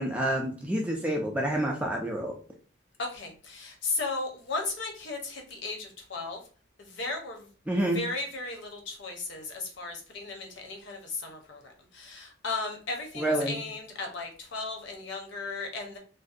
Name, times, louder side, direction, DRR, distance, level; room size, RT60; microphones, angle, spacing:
voice 1, 0.0-2.4 7.7-8.0 13.2-13.6, right 1 dB, 5° right, 0 dB, 0.3 m, -28 dB
voice 2, 3.0-6.4 6.8-7.5 7.9-16.0, left 3 dB, 70° left, 2 dB, 0.7 m, -35 dB
2.6 x 2.1 x 2.4 m, 0.39 s
head